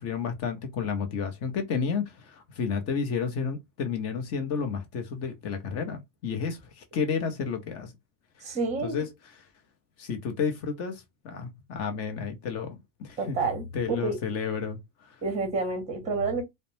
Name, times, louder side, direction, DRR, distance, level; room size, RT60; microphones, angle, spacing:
voice 1, 0.0-7.9 8.8-9.1 10.0-13.4 13.7-14.8 15.1-15.2, left 6 dB, 30° left, 0.7 m, -31 dB
voice 2, 8.4-9.0 13.2-14.2 15.2-16.4, right 3 dB, 15° right, 0.8 m, -29 dB
2.4 x 2.1 x 3.0 m
supercardioid pair, 130°, 50 cm